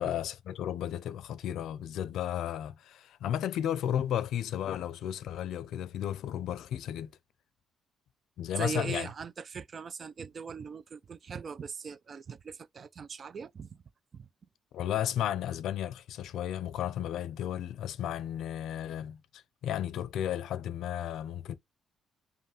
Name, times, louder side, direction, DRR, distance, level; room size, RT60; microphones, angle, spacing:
voice 1, 0.0-7.1 8.4-9.1 14.7-21.6, left 10 dB, 80° left, 0.5 m, -33 dB
voice 2, 8.5-13.8 14.1-14.3, right 6 dB, 45° right, 0.4 m, -40 dB
5.4 x 2.2 x 2.9 m
cardioid pair, 90°, 0 cm